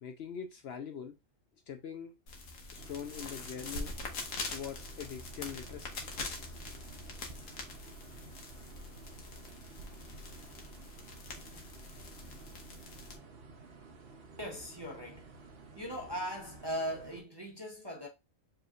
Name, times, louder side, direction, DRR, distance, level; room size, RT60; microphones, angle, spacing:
voice 1, 0.0-1.1 1.7-2.1 2.7-3.9 4.5-6.0, left 7 dB, 60° left, 0.7 m, -42 dB
sound 1, 2.3-13.2, left 3 dB, 90° left, 1.4 m, -44 dB
sound 2, 2.8-17.2, right 3 dB, 50° right, 0.9 m, -53 dB
voice 2, 14.4-15.3 15.8-18.1, equal, 25° right, 0.7 m, -39 dB
4.8 x 3.2 x 2.4 m
omnidirectional pair, 1.5 m